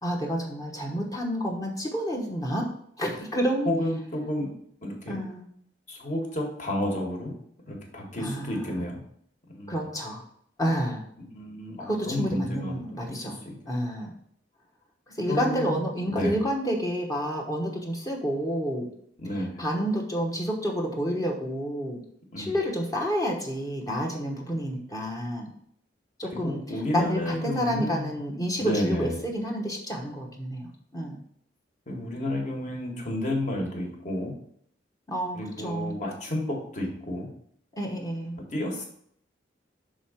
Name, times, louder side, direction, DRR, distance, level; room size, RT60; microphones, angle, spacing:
voice 1, 0.0-2.7 3.0-3.7 5.1-5.4 8.2-8.7 9.7-10.2 10.6-11.0 11.8-13.4 13.7-14.1 15.2-18.9 19.6-22.0 22.4-25.5 26.2-26.6 26.9-30.7 30.9-31.2 35.1-36.0 37.8-38.4, equal, 20° left, -1 dB, 1.0 m, -29 dB
voice 2, 3.6-4.5 4.8-5.2 5.9-7.3 7.7-9.0 9.5-9.8 11.3-12.7 13.2-13.5 15.3-15.8 16.1-16.3 19.2-19.6 22.3-22.6 26.4-28.1 28.6-29.2 31.9-34.3 35.3-37.3 38.5-38.8, left 1 dB, 40° left, 0 dB, 1.7 m, -31 dB
6.1 x 3.8 x 5.7 m, 0.66 s
head